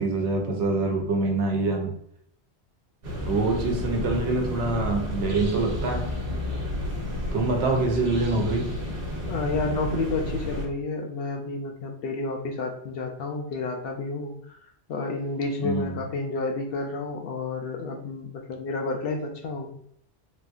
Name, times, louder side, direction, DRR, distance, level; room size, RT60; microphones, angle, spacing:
voice 1, 0.0-2.0 3.3-6.2 7.3-8.8 15.6-16.0, right 3 dB, 90° right, 1.0 m, -25 dB
sound 1, 3.0-10.7, left 1 dB, 60° right, 0.9 m, -31 dB
voice 2, 7.6-8.1 9.3-14.6 14.9-19.7, left 3 dB, 65° left, 0.7 m, -30 dB
3.4 x 2.6 x 2.3 m
omnidirectional pair, 1.1 m